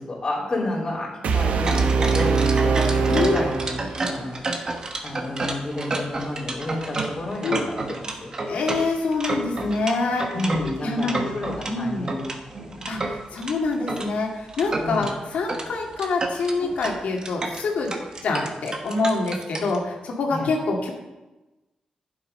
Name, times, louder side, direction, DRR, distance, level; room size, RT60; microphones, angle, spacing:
voice 1, 0.0-4.6 5.0-8.3 10.3-12.3 12.6-12.9 14.8-15.1 20.3-20.5, left 1 dB, 30° left, -6 dB, 3.2 m, -31 dB
sound 1, 1.2-4.3, right 4 dB, 80° right, 1.0 m, -22 dB
sound 2, 1.6-11.7 12.1-14.1 14.5-15.1 15.5-15.7 15.9-19.8, right 2 dB, 30° right, 1.3 m, -30 dB
voice 2, 3.1-3.4 7.4-7.7 8.5-10.4 10.8-11.1 11.6-12.1 12.9-17.9 18.2-20.9, left 3 dB, 90° left, 1 dB, 2.2 m, -26 dB
11.5 x 7.6 x 5.5 m, 1.1 s
wide cardioid pair, 170°, 2 cm